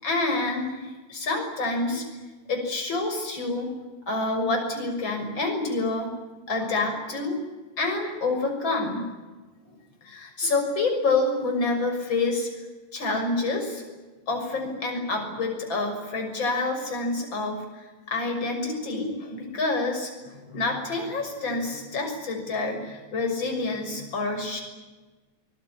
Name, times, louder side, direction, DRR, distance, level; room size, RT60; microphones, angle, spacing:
voice 1, 0.0-2.0 2.5-3.7 4.1-6.1 6.5-7.4 7.8-9.1 10.0-12.5 12.9-13.8 14.3-24.6, left 3 dB, 35° left, 3 dB, 7.0 m, -27 dB
24.5 x 21.0 x 10.0 m, 1.2 s
omnidirectional pair, 3.6 m